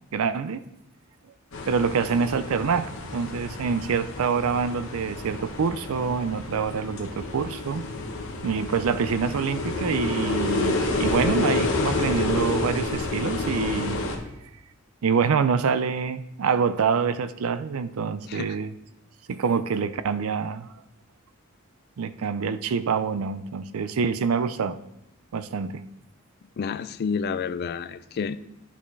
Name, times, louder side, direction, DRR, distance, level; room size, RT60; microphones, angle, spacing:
voice 1, 0.1-0.6 1.7-7.9 8.4-14.0 15.0-18.7 19.3-20.7 22.0-24.8 25.3-25.8, right 6 dB, 70° right, 13 dB, 0.4 m, -26 dB
sound 1, 1.5-14.2, left 2 dB, 65° left, 1.1 m, -29 dB
voice 2, 18.3-18.6 26.6-28.4, left 6 dB, 45° left, 14 dB, 0.3 m, -29 dB
11.5 x 5.3 x 3.2 m, 0.86 s
head